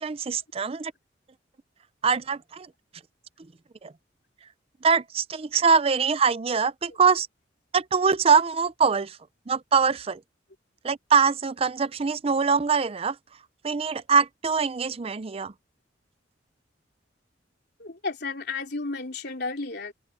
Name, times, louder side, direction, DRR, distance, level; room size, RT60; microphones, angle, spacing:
voice 1, 0.0-0.9 2.0-2.7 3.8-3.9 4.8-7.3 7.7-9.2 9.5-10.2 10.8-13.2 13.6-15.5, right 5 dB, 30° right, 0.5 m, -23 dB
voice 2, 17.8-19.9, left 3 dB, 60° left, 3.6 m, -32 dB
open air
head